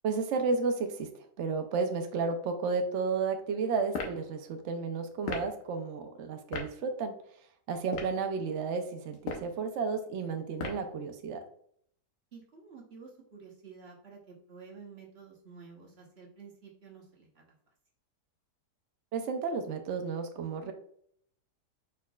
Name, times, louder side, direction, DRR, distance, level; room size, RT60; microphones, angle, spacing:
voice 1, 0.0-7.2 7.7-11.4 19.1-20.7, right 4 dB, 70° right, 6 dB, 0.7 m, -32 dB
sound 1, 3.9-4.2 5.2-5.5 6.5-6.7 7.8-8.2 9.1-9.5 10.6-10.9, left 4 dB, 75° left, 1.4 m, -36 dB
voice 2, 12.3-17.5, right 5 dB, 40° right, -2 dB, 1.2 m, -51 dB
5.1 x 4.3 x 2.3 m, 0.65 s
omnidirectional pair, 1.8 m